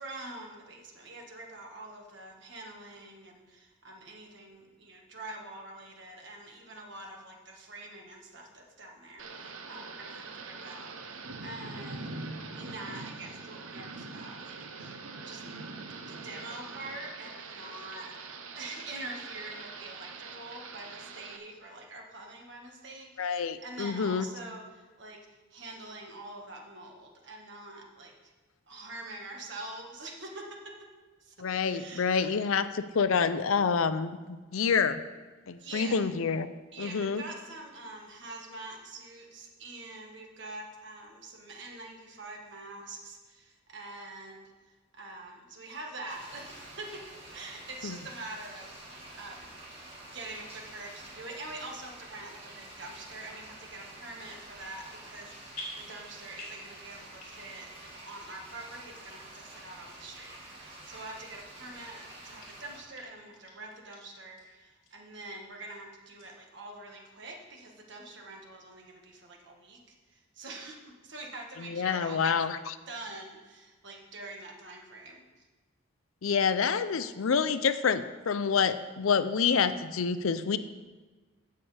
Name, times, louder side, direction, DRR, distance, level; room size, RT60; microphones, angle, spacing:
voice 1, 0.0-12.1 12.5-14.9 15.2-15.4 16.1-18.2 18.5-25.2 25.5-28.3 28.7-31.3 31.6-32.5 35.5-36.0 36.7-44.5 44.9-47.0 47.3-48.7 49.1-49.5 50.1-69.8 70.1-72.4 72.9-75.5, right 2 dB, 55° right, 0 dB, 1.6 m, -45 dB
Thunder / Rain, 9.2-21.4, right 3 dB, 80° right, 0.8 m, -43 dB
voice 2, 23.2-24.3 31.4-35.0 35.5-36.5 36.8-37.2 47.8-48.0 71.6-72.7 76.2-80.6, left 6 dB, 75° left, 13 dB, 0.5 m, -27 dB
sound 1, 46.1-62.8, right 1 dB, 25° right, 2.2 m, -49 dB
sound 2, 53.2-53.4 54.0-54.5 54.8-55.2 55.5-56.7 57.0-57.6 57.9-58.0 58.7-58.8 59.4-59.5 60.2-60.4 60.7-60.8 61.3-62.0 62.4-62.5 62.9-63.0 63.3-64.0 64.4-64.5 64.8-64.9 65.3-65.8 66.2-66.3, left 1 dB, 45° left, 3.2 m, -47 dB
16.0 x 6.8 x 3.4 m, 1.3 s
head